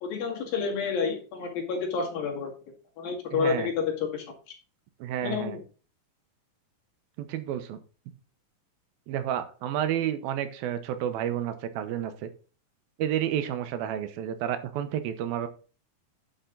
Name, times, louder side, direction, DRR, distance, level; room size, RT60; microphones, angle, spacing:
voice 1, 0.0-2.5 3.0-4.3 5.2-5.6, left 5 dB, 80° left, 0 dB, 4.0 m, -29 dB
voice 2, 3.3-3.7 5.0-5.6 7.3-7.8 9.1-12.3 13.0-15.5, right 10 dB, 85° right, 10 dB, 2.8 m, -30 dB
10.0 x 6.6 x 3.9 m, 0.36 s
omnidirectional pair, 4.1 m